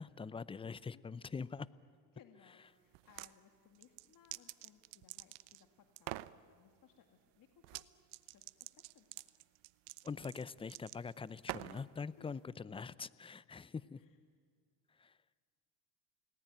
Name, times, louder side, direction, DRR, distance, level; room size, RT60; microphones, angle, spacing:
voice 1, 0.0-1.7 10.0-14.0 15.0-15.1, left 5 dB, 10° left, 19 dB, 0.6 m, -44 dB
voice 2, 2.1-7.8 8.3-9.3 12.2-12.3 14.0-14.2, left 8 dB, 40° left, 5 dB, 2.2 m, -65 dB
sound 1, 2.9-3.3 3.8-5.6 6.0-6.3 7.6-7.9 8.1-11.9, right 20 dB, 60° right, 0.9 m, -46 dB
29.5 x 19.0 x 9.2 m, 2.2 s
hypercardioid pair, 90°, 50 cm